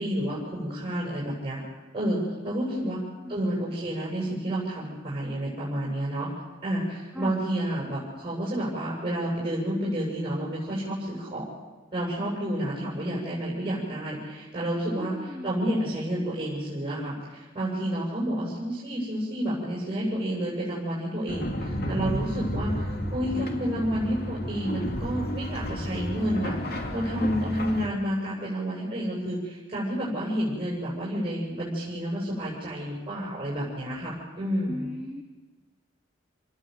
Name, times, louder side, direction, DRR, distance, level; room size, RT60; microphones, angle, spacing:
voice 1, 0.0-1.6 1.9-3.0 3.3-6.3 6.6-11.5 11.9-34.9, equal, 30° right, -5 dB, 7.6 m, -30 dB
voice 2, 14.9-15.6 34.7-35.2, left 1 dB, 5° right, -1 dB, 2.5 m, -37 dB
sound 1, 21.3-27.9, equal, 55° left, 2.8 m, -31 dB
29.0 x 20.5 x 8.1 m, 1.3 s
head